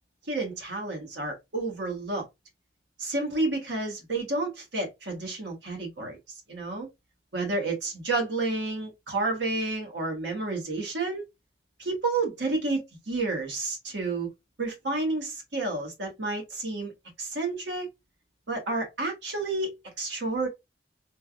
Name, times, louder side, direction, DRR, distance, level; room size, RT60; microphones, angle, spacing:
voice 1, 0.3-2.3 3.0-6.2 6.5-6.9 7.3-11.2 11.8-14.3 14.6-16.9 17.2-17.9 18.5-20.5, right 3 dB, 80° right, 1.2 m, -30 dB
3.2 x 2.3 x 2.3 m
head